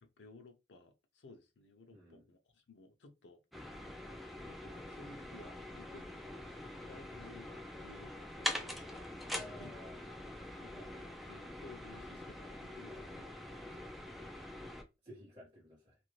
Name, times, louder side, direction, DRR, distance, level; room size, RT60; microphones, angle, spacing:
voice 1, 0.0-3.4 4.5-9.0 9.6-9.8 10.6-10.9 11.3-13.3, left 2 dB, 85° left, 0.5 m, -57 dB
voice 2, 1.9-2.2 7.1-7.2 9.3-10.1 10.7-11.0 11.3-11.5 12.9-13.0 15.0-16.0, left 1 dB, 35° right, 1.2 m, -54 dB
sound 1, 3.5-14.8, left 1 dB, ahead, 0.4 m, -44 dB
2.5 x 2.5 x 3.1 m
head